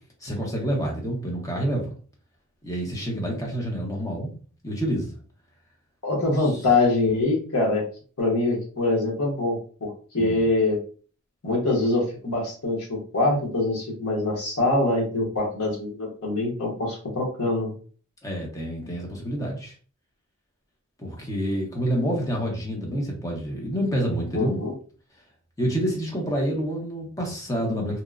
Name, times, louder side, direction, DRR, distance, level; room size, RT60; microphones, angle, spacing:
voice 1, 0.2-1.9 2.6-4.3 4.6-5.2 10.1-10.5 18.2-19.7 21.0-24.6 25.6-28.0, equal, 15° left, -1 dB, 0.7 m, -28 dB
voice 2, 6.0-7.8 8.2-10.8 11.4-17.7 24.3-24.7, left 2 dB, 85° left, -2 dB, 1.0 m, -24 dB
2.9 x 2.1 x 2.3 m, 0.41 s
head